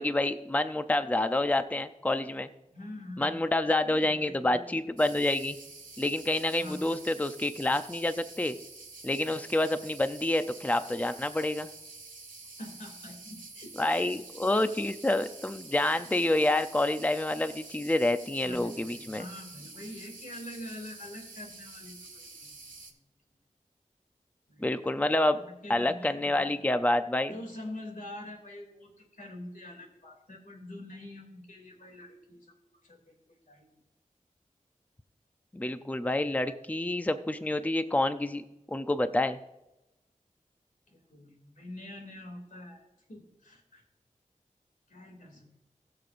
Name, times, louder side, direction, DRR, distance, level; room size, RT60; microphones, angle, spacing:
voice 1, 0.0-2.5 3.2-5.6 6.0-8.6 9.0-11.7 13.8-19.2 24.6-25.4 25.7-27.3 35.5-38.4 38.7-39.4, left 1 dB, 10° left, 10 dB, 0.5 m, -28 dB
voice 2, 2.7-3.4 3.8-4.7 6.6-7.3 12.6-14.1 18.4-22.6 24.5-24.7 25.3-26.6 27.3-32.5 32.8-33.1 33.5-33.7 40.9-42.8 43.1-43.8 44.9-45.5, left 1 dB, 85° left, 1 dB, 2.6 m, -45 dB
sound 1, 5.0-22.9, right 3 dB, 80° right, 1.7 m, -48 dB
19.5 x 6.7 x 2.5 m, 0.90 s
wide cardioid pair, 60°, 13 cm